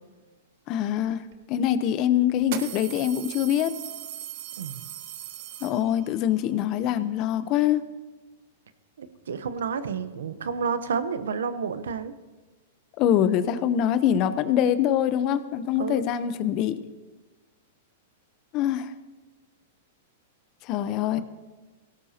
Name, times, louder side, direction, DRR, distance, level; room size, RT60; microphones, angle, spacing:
voice 1, 0.7-1.2 1.5-3.7 5.6-7.8 13.0-16.8 18.5-18.9 20.7-21.2, left 10 dB, 40° left, 12 dB, 0.9 m, -24 dB
sound 1, 1.3-1.4 2.4-6.2, right 11 dB, 60° right, 1.3 m, -38 dB
voice 2, 9.0-12.1 15.8-16.1, right 6 dB, 85° right, 12 dB, 0.9 m, -30 dB
17.5 x 17.0 x 2.9 m, 1.2 s
hypercardioid pair, 125°, 0 cm